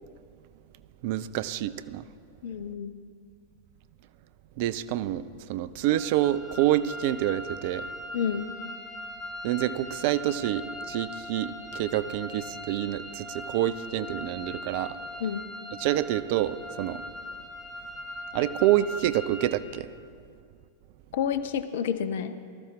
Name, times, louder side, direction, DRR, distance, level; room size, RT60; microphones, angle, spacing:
voice 1, 1.0-2.1 4.6-5.2 5.5-7.9 9.4-15.0 15.8-17.0 18.3-19.9, right 13 dB, 50° right, 15 dB, 0.4 m, -27 dB
voice 2, 2.4-2.9 8.1-8.5 15.2-15.4 21.1-22.3, left 8 dB, 55° left, 11 dB, 0.7 m, -29 dB
sound 1, 5.8-19.5, left 1 dB, 20° left, 2.3 m, -40 dB
19.5 x 13.0 x 3.6 m, 2.2 s
figure-of-eight pair, 90°, 0 cm